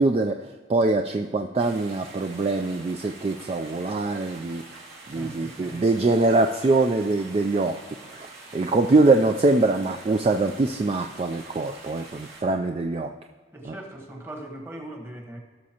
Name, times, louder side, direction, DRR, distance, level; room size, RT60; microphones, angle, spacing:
voice 1, 0.0-4.6 5.1-7.8 8.1-8.3 8.5-13.1, right 2 dB, 35° right, 4 dB, 0.3 m, -23 dB
sound 1, 1.6-12.4, right 3 dB, 65° right, 2.1 m, -45 dB
voice 2, 5.1-5.8 13.5-15.4, right 1 dB, 15° right, 0 dB, 1.2 m, -40 dB
17.5 x 6.3 x 2.9 m, 1.5 s
head